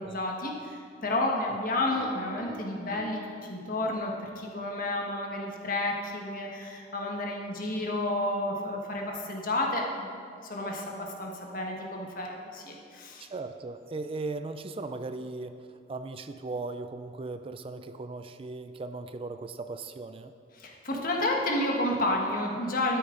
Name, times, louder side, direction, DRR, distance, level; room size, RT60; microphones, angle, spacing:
voice 1, 0.0-10.1 10.4-13.3 20.5-23.0, left 1 dB, 50° left, 0 dB, 1.5 m, -31 dB
Piano, 1.9-4.2, left 6 dB, 70° left, 1.6 m, -47 dB
voice 2, 13.2-20.3, right 3 dB, 30° right, 9 dB, 0.4 m, -38 dB
12.0 x 9.8 x 3.9 m, 2.4 s
head